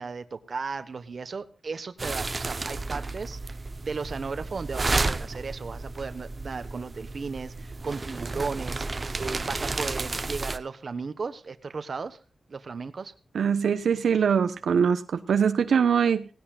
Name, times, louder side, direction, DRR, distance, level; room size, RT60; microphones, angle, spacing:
voice 1, 0.0-8.9 9.2-12.2 12.5-13.1, right 4 dB, 45° right, 11 dB, 1.3 m, -35 dB
sound 1, 2.0-10.6, right 3 dB, 30° right, 0.9 m, -32 dB
voice 2, 13.3-16.3, right 7 dB, 85° right, 9 dB, 1.0 m, -23 dB
18.5 x 16.5 x 2.5 m, 0.35 s
wide cardioid pair, 145°, 0 cm